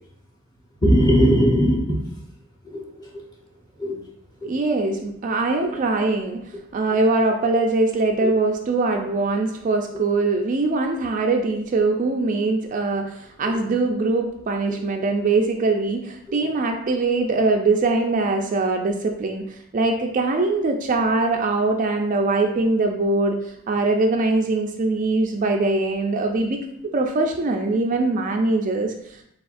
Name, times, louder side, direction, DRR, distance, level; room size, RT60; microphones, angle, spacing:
voice 1, 0.8-2.0 2.6-2.9 3.1-3.2 3.8-4.0 4.4-4.5 5.6-5.7 8.2-8.3 8.9-9.0 13.5-13.7, equal, 20° left, -3 dB, 1.0 m, -19 dB
voice 2, 4.4-6.4 6.7-23.4 23.7-26.6 26.9-28.9, right 3 dB, 40° right, 3 dB, 0.4 m, -22 dB
4.6 x 3.5 x 2.5 m, 0.73 s
head